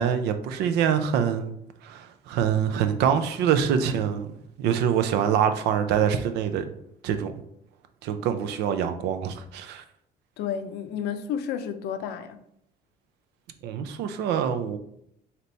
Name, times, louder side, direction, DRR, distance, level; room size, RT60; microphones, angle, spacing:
voice 1, 0.0-1.6 1.8-4.3 4.6-6.6 7.0-7.3 8.0-9.8 13.6-14.8, right 8 dB, 85° right, 0.5 m, -25 dB
voice 2, 10.4-12.4, left 8 dB, 75° left, 0.5 m, -31 dB
3.3 x 2.8 x 3.9 m
cardioid pair, 110°, 17 cm